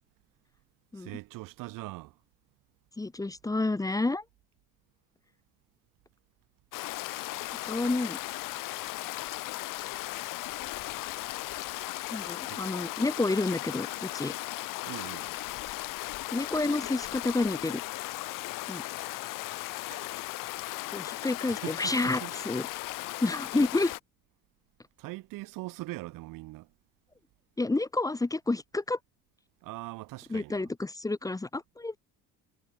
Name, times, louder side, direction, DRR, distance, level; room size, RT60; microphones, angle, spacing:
voice 1, 0.9-2.2 12.5-12.6 14.8-15.3 19.9-20.4 21.2-21.3 21.6-22.3 25.0-26.7 29.6-30.7, right 20 dB, 75° right, 7.5 m, -42 dB
voice 2, 3.0-4.2 7.6-8.2 12.1-14.3 16.3-17.8 18.7-18.8 19.6-19.7 20.9-22.7 23.2-24.0 27.6-29.0 30.3-32.0, left 2 dB, 10° left, 2.9 m, -29 dB
Stream, 6.7-24.0, left 19 dB, 75° left, 6.9 m, -37 dB
cardioid pair, 145°, 33 cm